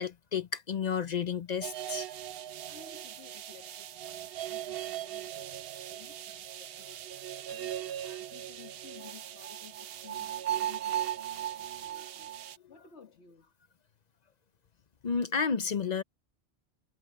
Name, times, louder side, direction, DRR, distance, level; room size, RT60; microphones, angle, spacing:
voice 1, 0.0-2.1 15.0-16.0, left 6 dB, 45° left, 0.7 m, -31 dB
sound 1, 1.6-12.6, right 11 dB, 65° right, 0.8 m, -38 dB
voice 2, 2.7-13.5 15.4-15.5, left 5 dB, 70° left, 1.9 m, -56 dB
omnidirectional pair, 1.1 m